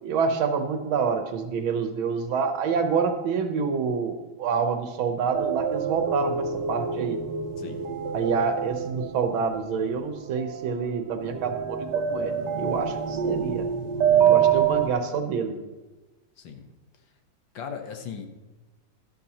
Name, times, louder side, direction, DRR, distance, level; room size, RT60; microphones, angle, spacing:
voice 1, 0.0-7.2 8.1-13.7 14.3-15.6, right 5 dB, 85° right, 7 dB, 1.8 m, -27 dB
sound 1, 5.3-14.9, right 8 dB, 65° right, 1.3 m, -26 dB
voice 2, 14.0-14.5 16.4-16.7 17.5-18.3, left 6 dB, 70° left, 5 dB, 1.7 m, -38 dB
12.5 x 11.5 x 2.9 m, 1.2 s
omnidirectional pair, 2.2 m